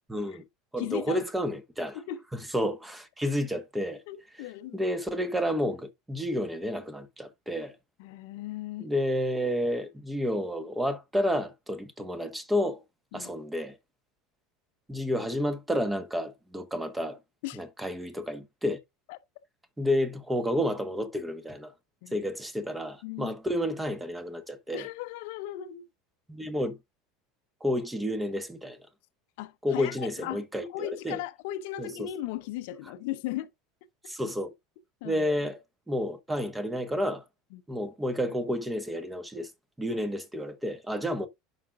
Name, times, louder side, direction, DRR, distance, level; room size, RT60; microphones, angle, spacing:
voice 1, 0.1-0.4 0.7-2.0 2.5-4.0 4.7-7.7 8.8-12.8 13.1-13.8 14.9-17.2 17.5-18.8 19.8-21.7 22.1-24.9 26.3-26.8 27.6-28.8 29.6-31.2 31.8-32.1 34.1-34.5 35.0-35.6 35.9-37.2 37.7-39.5 39.8-41.3, equal, 10° right, 1.3 m, -30 dB
voice 2, 0.8-1.2 1.9-2.2 4.1-4.8 8.0-8.9 13.1-13.3 17.4-17.6 19.1-19.2 22.0-22.2 23.0-23.3 24.7-25.8 29.4-30.4 30.7-33.5 35.0-35.3 37.5-37.6, left 13 dB, 60° left, 0.8 m, -37 dB
11.0 x 5.0 x 2.4 m
figure-of-eight pair, 75°, 0 cm